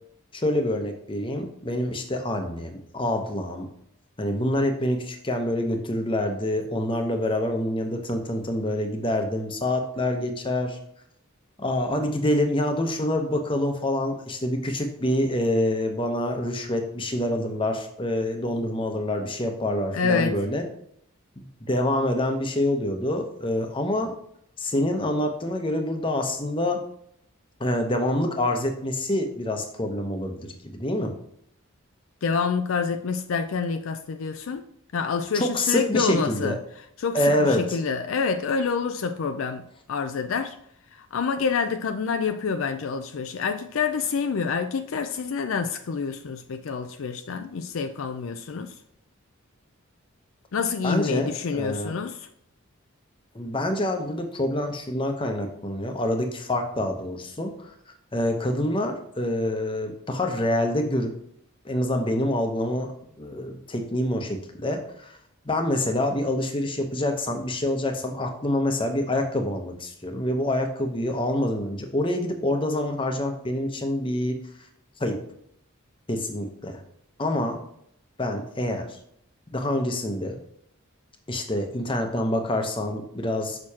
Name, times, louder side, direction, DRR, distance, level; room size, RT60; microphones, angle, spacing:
voice 1, 0.3-3.7 4.2-10.8 11.6-20.6 21.4-24.1 24.6-26.8 27.6-31.1 35.3-36.6 37.1-37.8 50.8-52.0 53.3-57.7 58.1-61.1 61.6-62.9 63.2-65.2 65.5-74.4 75.0-75.2 76.1-76.8 77.2-77.6 78.2-78.9 79.5-80.4 81.3-83.6, left 1 dB, 25° left, 0.8 m, -26 dB
voice 2, 19.9-20.4 32.2-34.7 34.9-36.6 37.0-40.6 40.9-48.8 50.5-52.3, left 5 dB, 70° left, 0.4 m, -27 dB
6.5 x 5.9 x 2.9 m
head